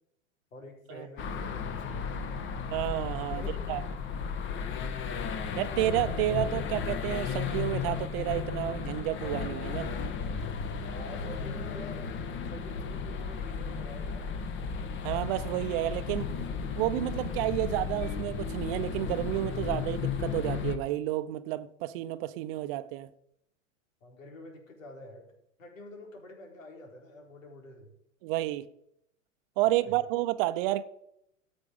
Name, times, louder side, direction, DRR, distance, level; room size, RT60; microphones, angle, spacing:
voice 1, 0.5-2.2 3.3-3.5 10.9-12.1 12.5-14.3 24.0-25.3 25.6-27.9 29.8-30.0, left 1 dB, 80° left, 4.5 m, -47 dB
sound 1, 1.2-20.8, left 6 dB, 30° left, 1.5 m, -34 dB
voice 2, 2.7-3.8 5.6-9.9 15.0-16.3 16.7-23.1 28.2-28.7 29.6-30.8, right 15 dB, 45° right, 0.8 m, -30 dB
13.0 x 8.4 x 5.4 m
hypercardioid pair, 115°, 39 cm